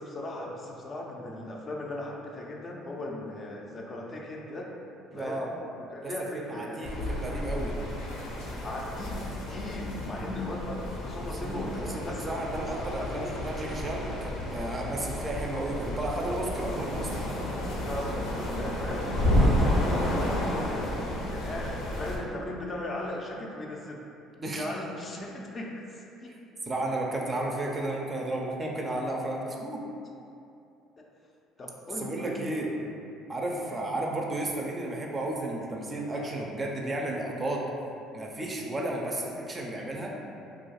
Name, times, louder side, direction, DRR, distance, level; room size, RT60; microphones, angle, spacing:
voice 1, 0.0-4.7 5.1-5.4 5.8-6.9 8.6-13.4 17.8-20.9 21.3-24.0 24.5-26.4 31.0-31.1 31.6-32.7 33.5-33.8, left 1 dB, 35° left, -1 dB, 0.4 m, -38 dB
voice 2, 5.1-5.5 6.0-7.7 11.2-17.3 19.3-19.6 24.4-24.7 26.7-29.8 32.0-32.7 33.3-37.7 38.1-40.2, right 1 dB, 30° right, -1 dB, 0.4 m, -33 dB
sound 1, 6.8-22.2, left 1 dB, 80° left, 0.6 m, -31 dB
2.4 x 2.3 x 4.0 m, 2.7 s
supercardioid pair, 90°, 0 cm